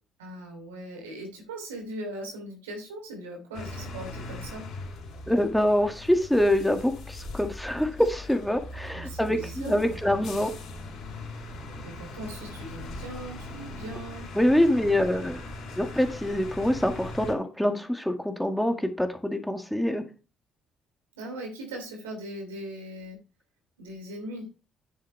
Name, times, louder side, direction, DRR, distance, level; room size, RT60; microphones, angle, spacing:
voice 1, 0.2-4.6 8.9-10.0 11.8-14.3 14.7-15.1 21.1-23.2 23.8-24.5, right 1 dB, 85° right, 1 dB, 3.0 m, -39 dB
sound 1, 3.5-17.3, left 2 dB, 60° left, 3.3 m, -40 dB
voice 2, 5.3-10.5 14.3-15.4 15.8-20.1, left 1 dB, 5° left, 5 dB, 1.9 m, -25 dB
9.7 x 7.5 x 3.3 m, 0.31 s
hypercardioid pair, 50°, 0 cm